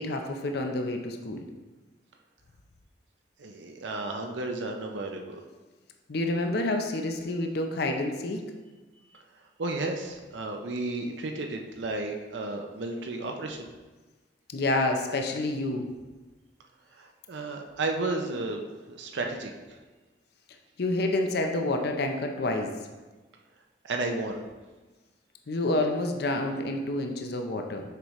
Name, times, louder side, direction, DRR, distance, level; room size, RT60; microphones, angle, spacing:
voice 1, 0.0-1.4 6.1-8.4 14.5-15.9 20.8-22.7 25.5-27.8, left 2 dB, 65° left, 4 dB, 0.6 m, -28 dB
voice 2, 3.4-5.4 9.6-13.7 17.0-19.5 23.8-24.4, right 2 dB, 85° right, 3 dB, 0.6 m, -33 dB
6.7 x 4.9 x 3.1 m, 1.2 s
head